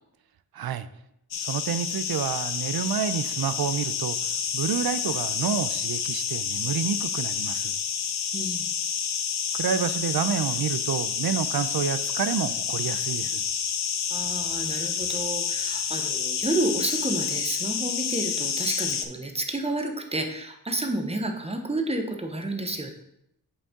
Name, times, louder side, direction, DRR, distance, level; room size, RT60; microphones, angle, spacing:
voice 1, 0.5-0.9 1.5-4.2 4.5-7.7 9.6-13.4, right 8 dB, 70° right, 13 dB, 0.5 m, -29 dB
sound 1, 1.3-19.1, left 7 dB, 85° left, 0.6 m, -29 dB
voice 2, 8.3-8.7 14.1-22.9, right 2 dB, 15° right, 4 dB, 0.8 m, -30 dB
7.0 x 5.5 x 3.6 m, 0.80 s
wide cardioid pair, 110°, 38 cm